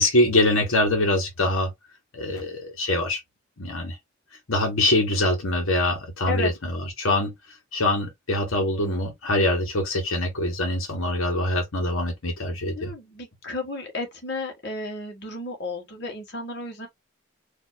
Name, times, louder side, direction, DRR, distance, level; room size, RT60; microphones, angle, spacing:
voice 1, 0.0-1.7 2.1-3.2 3.6-4.0 4.5-6.7 7.0-7.3 7.7-12.9, left 1 dB, 80° left, 1.3 m, -24 dB
voice 2, 12.7-16.9, left 3 dB, 50° left, 1.5 m, -33 dB
4.4 x 2.8 x 2.7 m
head